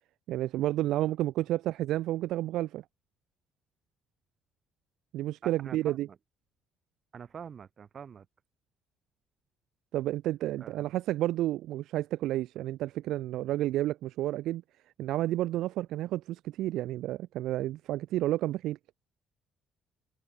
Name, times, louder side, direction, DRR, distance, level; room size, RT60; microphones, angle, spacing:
voice 1, 0.3-2.8 5.1-6.1 9.9-14.6 15.0-18.8, right 14 dB, 70° right, 0.5 m, -31 dB
voice 2, 5.4-6.2 7.1-8.3 10.6-10.9, right 7 dB, 35° right, 3.8 m, -45 dB
cardioid pair, 160°, 0 cm